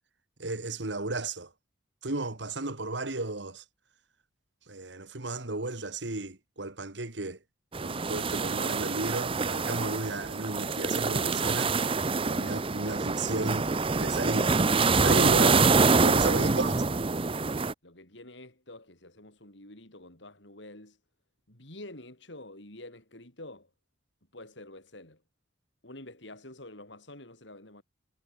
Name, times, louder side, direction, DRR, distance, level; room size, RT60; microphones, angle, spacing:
voice 1, 0.4-1.5 2.0-3.6 4.7-7.4 7.8-13.7 14.0-14.6 15.0-15.6 16.0-16.8, right 2 dB, 65° right, 2.0 m, -33 dB
sound 1, 7.7-17.7, right 4 dB, 30° right, 0.7 m, -26 dB
voice 2, 16.2-16.6 17.8-21.0 21.5-23.7 24.3-25.2 25.8-27.8, left 1 dB, 70° left, 6.0 m, -48 dB
head